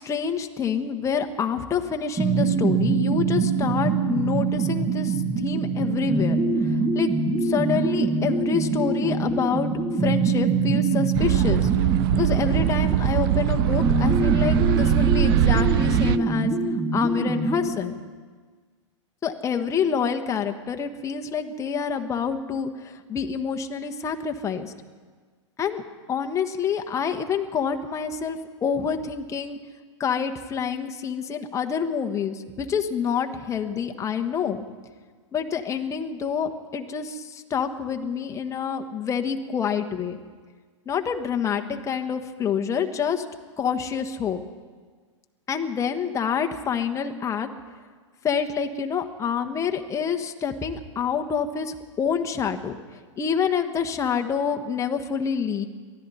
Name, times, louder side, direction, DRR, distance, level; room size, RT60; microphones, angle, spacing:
voice 1, 0.0-7.1 7.4-9.7 10.0-11.7 12.1-16.5 16.9-18.0 19.2-24.7 25.6-25.8 26.1-29.6 30.0-34.6 35.3-40.2 40.9-43.2 43.6-44.4 45.5-47.5 48.2-52.8 53.2-55.7, left 6 dB, 20° left, 5 dB, 1.2 m, -27 dB
sound 1, 2.2-17.7, right 4 dB, 20° right, 2.5 m, -24 dB
sound 2, 11.1-16.2, right 14 dB, 50° right, 0.5 m, -22 dB
23.0 x 14.5 x 4.2 m, 1.5 s
hypercardioid pair, 110°, 16 cm